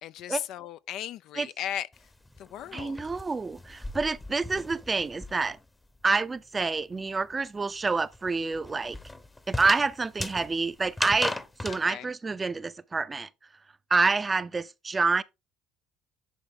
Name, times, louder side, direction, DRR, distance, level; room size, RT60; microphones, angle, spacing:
voice 1, 0.0-1.9 2.4-3.0 11.8-12.1, left 11 dB, 65° left, 0.5 m, -36 dB
sound 1, 1.9-5.7 6.0-11.8, left 2 dB, 15° left, 0.9 m, -37 dB
voice 2, 2.7-5.6 6.0-9.0 9.5-11.3 11.6-13.3 13.9-15.2, right 4 dB, 25° right, 0.6 m, -27 dB
10.5 x 4.4 x 3.7 m
supercardioid pair, 80°, 0 cm